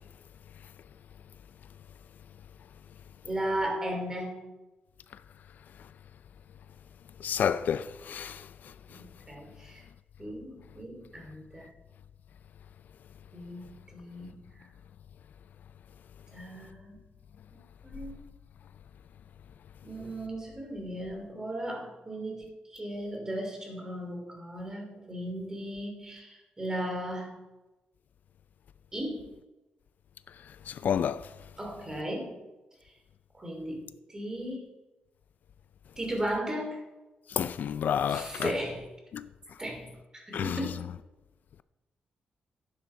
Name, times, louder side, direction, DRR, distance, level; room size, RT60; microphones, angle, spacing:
voice 1, 3.2-4.5 8.9-9.8 10.2-11.7 13.3-14.6 16.3-17.0 17.5-18.2 19.8-27.4 28.9-29.3 31.6-32.4 32.8-32.9 33.3-34.6 36.0-36.8 38.1-38.9 39.6-40.9, right 1 dB, 20° right, 2.7 m, -36 dB
voice 2, 7.2-8.5 30.7-31.3 37.3-38.5 39.1-39.2 40.3-40.6, left 8 dB, 65° left, 0.4 m, -29 dB
11.0 x 9.6 x 4.3 m
wide cardioid pair, 135°, 3 cm